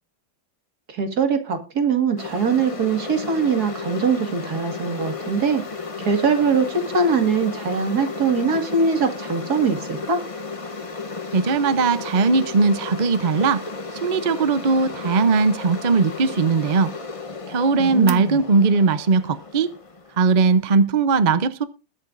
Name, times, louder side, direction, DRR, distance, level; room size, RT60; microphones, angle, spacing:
voice 1, 0.9-5.6 6.0-10.2 17.8-18.4, right 5 dB, 55° right, 2.5 m, -22 dB
sound 1, 2.2-20.6, left 4 dB, 25° left, 0.7 m, -34 dB
voice 2, 11.3-13.6 14.0-16.9 17.5-19.7 20.2-21.7, right 4 dB, 70° right, 0.4 m, -19 dB
21.0 x 8.7 x 2.6 m
omnidirectional pair, 2.1 m